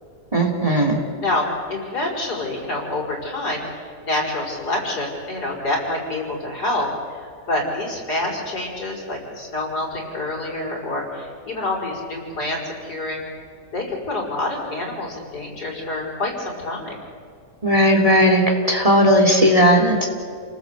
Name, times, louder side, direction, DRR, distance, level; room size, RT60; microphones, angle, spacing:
voice 1, 0.3-1.0 17.6-18.4 18.7-20.0, equal, 20° right, 2 dB, 2.9 m, -16 dB
voice 2, 1.2-13.2 13.7-17.0, left 2 dB, 65° left, -2 dB, 5.7 m, -27 dB
29.0 x 19.0 x 8.3 m, 2.3 s
omnidirectional pair, 1.8 m